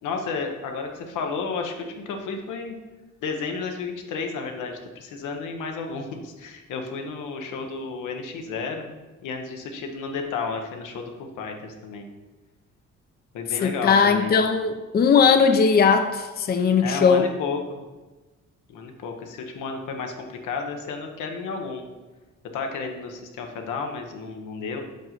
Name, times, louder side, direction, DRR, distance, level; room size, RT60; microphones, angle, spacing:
voice 1, 0.0-2.8 3.2-8.9 9.2-12.1 13.3-14.3 16.8-17.8 18.7-21.8 22.5-24.8, left 4 dB, 85° left, 3 dB, 1.0 m, -32 dB
voice 2, 13.6-17.3, left 6 dB, 30° left, 7 dB, 0.5 m, -19 dB
5.3 x 3.8 x 5.8 m, 1.2 s
cardioid pair, 90°, 30 cm